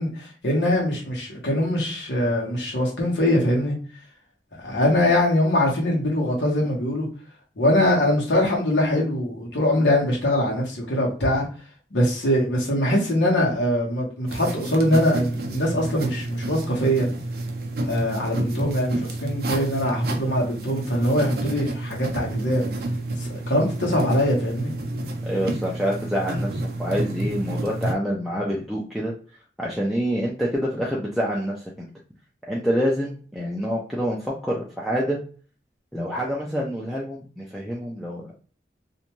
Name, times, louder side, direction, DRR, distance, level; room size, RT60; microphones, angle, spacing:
voice 1, 0.0-3.8 4.6-7.1 7.6-11.5 11.9-17.1 17.9-22.6 23.2-24.7, left 1 dB, 85° left, 1.0 m, -22 dB
sound 1, 14.3-27.9, right 2 dB, 60° right, 0.5 m, -29 dB
voice 2, 25.2-29.1 29.6-31.9 32.5-35.2 35.9-38.3, equal, ahead, 0.4 m, -27 dB
2.5 x 2.2 x 2.9 m
head